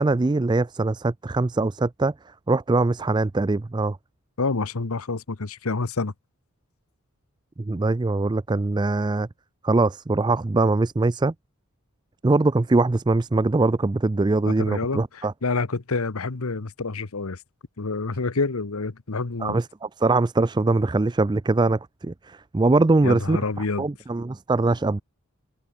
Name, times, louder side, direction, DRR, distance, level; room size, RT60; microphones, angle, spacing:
voice 1, 0.0-4.0 7.6-9.3 9.6-11.3 12.2-15.3 19.4-25.0, right 2 dB, 20° right, 0.4 m, -22 dB
voice 2, 4.4-6.1 14.5-17.4 17.8-19.6 23.0-23.9, left 3 dB, 80° left, 1.0 m, -28 dB
head